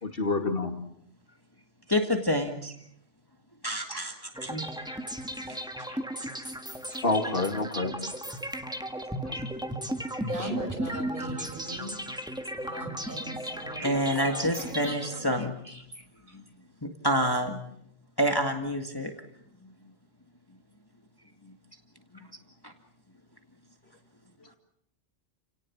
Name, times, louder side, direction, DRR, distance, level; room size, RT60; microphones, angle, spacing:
voice 1, 0.0-0.8 7.0-7.9 9.2-9.3, left 2 dB, 55° left, 2.6 m, -27 dB
voice 2, 1.9-2.8 3.6-5.0 5.5-6.0 6.9-7.0 8.3-8.4 9.3-9.5 10.1-10.5 11.2-11.4 13.8-15.6 16.3-16.4 16.8-17.6 18.2-19.1 22.1-22.3 22.6-22.7, equal, 20° left, 1.9 m, -29 dB
sound 1, 4.3-15.4, equal, 5° right, 1.7 m, -35 dB
voice 3, 10.3-12.0 12.6-14.0 14.2-15.3 15.7-15.8, right 1 dB, 45° right, 5.6 m, -39 dB
29.5 x 18.5 x 7.3 m
omnidirectional pair, 1.2 m